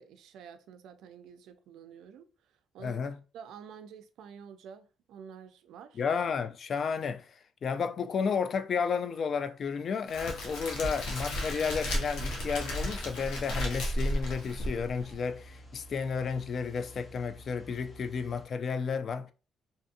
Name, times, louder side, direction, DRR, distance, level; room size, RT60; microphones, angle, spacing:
voice 1, 0.0-2.3 2.7-3.1 3.3-6.0, right 7 dB, 85° right, 0.3 m, -49 dB
voice 2, 2.8-3.2 6.0-7.3 7.6-19.3, left 6 dB, 55° left, 0.3 m, -32 dB
Crackle, 10.1-15.1, equal, 90° left, 0.8 m, -33 dB
sound 1, 10.1-18.5, equal, 15° left, 0.8 m, -51 dB
2.6 x 2.5 x 2.5 m
cardioid pair, 90°, 0 cm